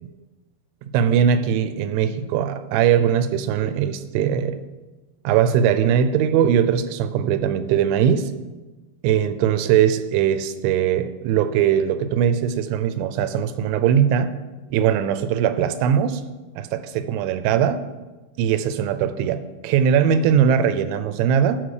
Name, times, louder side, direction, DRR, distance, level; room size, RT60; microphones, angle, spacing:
voice 1, 0.8-4.6 5.2-8.3 9.0-14.3 14.7-16.2 16.6-17.8 18.4-21.6, right 8 dB, 85° right, 11 dB, 2.9 m, -20 dB
13.5 x 6.5 x 4.9 m, 1.2 s
omnidirectional pair, 5.4 m